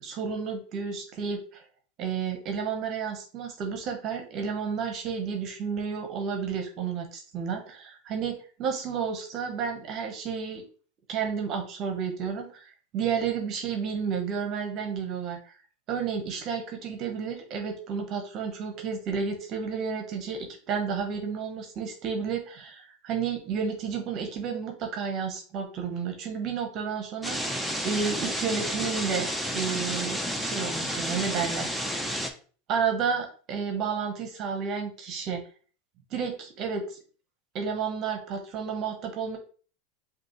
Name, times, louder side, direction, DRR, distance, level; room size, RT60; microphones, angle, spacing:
voice 1, 0.0-1.6 2.0-7.6 8.1-8.3 8.6-10.6 11.1-15.6 15.9-29.3 29.5-31.7 32.7-35.4 36.1-37.0 37.5-39.4, right 6 dB, 45° right, 4 dB, 0.9 m, -31 dB
sound 1, 27.2-32.3, equal, ahead, 0.7 m, -31 dB
5.1 x 2.7 x 3.0 m, 0.41 s
hypercardioid pair, 105°, 0 cm